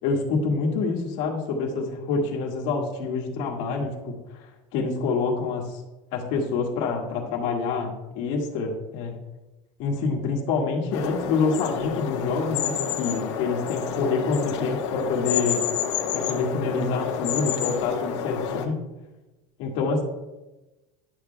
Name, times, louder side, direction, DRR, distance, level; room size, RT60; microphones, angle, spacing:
voice 1, 0.0-4.4 4.7-5.8 6.1-9.2 9.8-15.6 16.1-18.8 19.6-20.0, left 4 dB, 55° left, 0 dB, 1.8 m, -27 dB
sound 1, 10.9-18.7, left 8 dB, 85° left, 1.2 m, -29 dB
11.5 x 7.5 x 2.3 m, 1.1 s
supercardioid pair, 150°, 15 cm